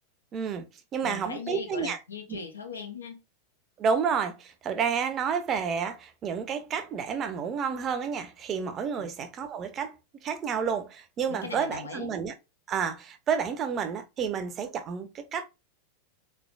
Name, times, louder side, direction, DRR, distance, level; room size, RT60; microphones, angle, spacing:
voice 1, 0.3-0.7 0.9-2.0 2.3-2.4 3.8-9.9 10.2-12.3 12.7-15.5, right 6 dB, 30° right, 0.6 m, -30 dB
voice 2, 1.0-3.2 9.0-9.1 11.3-12.1, left 5 dB, 75° left, 0.8 m, -39 dB
3.7 x 3.4 x 2.3 m
figure-of-eight pair, 90°, 0 cm